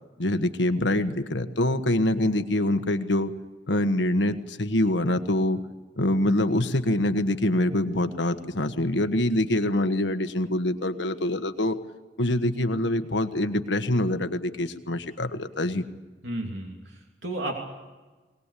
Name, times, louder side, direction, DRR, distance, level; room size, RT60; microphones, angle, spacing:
voice 1, 0.2-3.3 3.7-5.6 6.0-11.8 12.2-15.8, left 1 dB, 85° left, 9 dB, 1.4 m, -25 dB
voice 2, 16.2-17.5, right 1 dB, 85° right, 1 dB, 3.0 m, -33 dB
22.0 x 19.0 x 8.4 m, 1.2 s
head